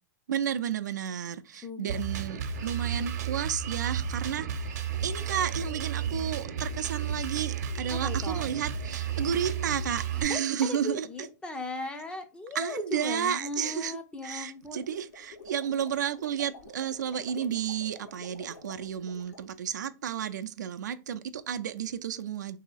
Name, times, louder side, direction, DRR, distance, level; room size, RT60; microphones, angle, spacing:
voice 1, 0.3-4.8 5.0-11.3 12.5-14.0 14.2-22.6, right 9 dB, 85° right, 0.5 m, -32 dB
voice 2, 1.6-2.0 2.3-2.4 7.9-8.5 10.1-14.8, left 2 dB, 10° left, 0.5 m, -38 dB
Drum kit, 1.9-10.2, right 7 dB, 65° right, 0.8 m, -33 dB
sound 1, 14.5-19.5, left 4 dB, 65° left, 1.2 m, -49 dB
3.1 x 2.8 x 4.0 m
hypercardioid pair, 135°, 9 cm